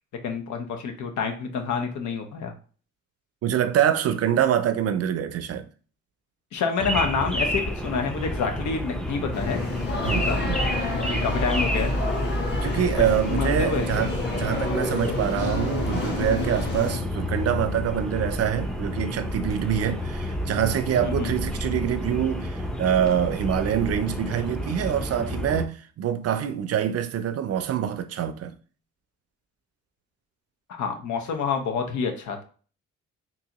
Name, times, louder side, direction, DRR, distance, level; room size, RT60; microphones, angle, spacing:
voice 1, 0.2-2.5 6.5-9.6 10.1-10.4 11.0-11.9 12.9-13.0 13.3-14.1 21.0-21.4 30.7-32.4, left 5 dB, 75° left, 0.9 m, -28 dB
voice 2, 3.4-5.7 10.0-10.6 12.6-28.6, right 9 dB, 55° right, 0.5 m, -25 dB
sound 1, 6.8-25.7, equal, ahead, 0.5 m, -30 dB
sound 2, 9.3-17.0, left 3 dB, 35° left, 1.4 m, -29 dB
3.8 x 2.7 x 2.9 m
cardioid pair, 90°, 30 cm